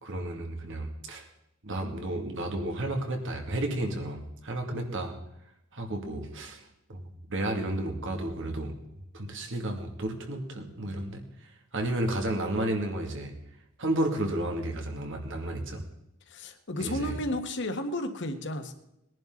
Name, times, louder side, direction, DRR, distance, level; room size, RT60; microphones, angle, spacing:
voice 1, 0.0-1.3 1.6-5.2 5.7-6.6 6.9-8.7 9.1-13.3 13.8-15.8 16.8-17.2, right 1 dB, 65° right, 3 dB, 2.3 m, -32 dB
voice 2, 4.7-5.0 16.3-18.7, left 1 dB, 55° left, 6 dB, 1.6 m, -33 dB
20.5 x 10.5 x 3.9 m, 0.85 s
head